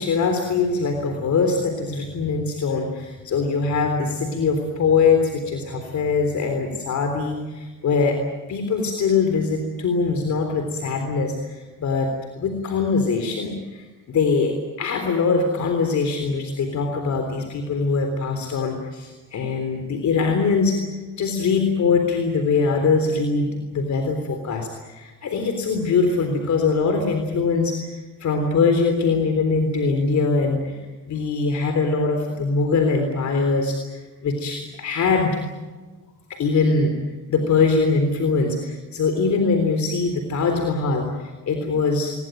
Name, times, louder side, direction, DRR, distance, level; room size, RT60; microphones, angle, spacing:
voice 1, 0.0-8.2 8.5-12.1 12.4-20.8 21.2-27.9 28.2-30.8 31.1-35.4 36.3-36.9 37.3-42.1, left 4 dB, 65° left, 5 dB, 3.7 m, -22 dB
22.0 x 21.5 x 9.2 m, 1.3 s
cardioid pair, 85°, 31 cm